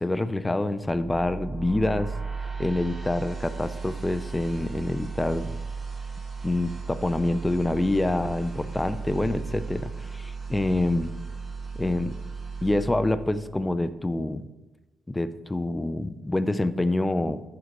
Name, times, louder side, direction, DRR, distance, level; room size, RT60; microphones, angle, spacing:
voice 1, 0.0-2.1 2.6-5.6 6.4-11.1 11.8-12.2 12.6-14.4 15.1-17.4, left 2 dB, 10° left, 13 dB, 0.3 m, -26 dB
sound 1, 0.8-13.9, right 4 dB, 25° right, 1.0 m, -36 dB
7.7 x 4.7 x 4.0 m, 1.1 s
cardioid pair, 155°, 0 cm